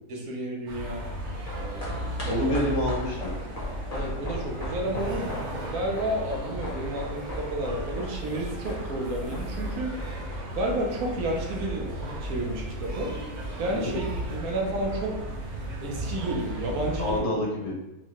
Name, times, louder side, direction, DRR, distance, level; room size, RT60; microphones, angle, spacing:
voice 1, 0.1-1.0 1.5-2.6 3.9-5.3 5.7-9.9 10.5-11.9 12.2-13.1 13.6-14.1 14.3-15.2 15.8-17.3, right 1 dB, 70° right, 0 dB, 1.1 m, -31 dB
sound 1, 0.7-17.2, right 1 dB, 40° right, 0.7 m, -35 dB
sound 2, 1.1-11.7 12.0-12.1, left 1 dB, 35° left, 0.6 m, -40 dB
voice 2, 2.3-3.3 13.7-14.0 17.0-17.7, left 1 dB, 60° left, -3 dB, 1.1 m, -27 dB
4.5 x 2.1 x 2.9 m, 0.98 s
omnidirectional pair, 1.7 m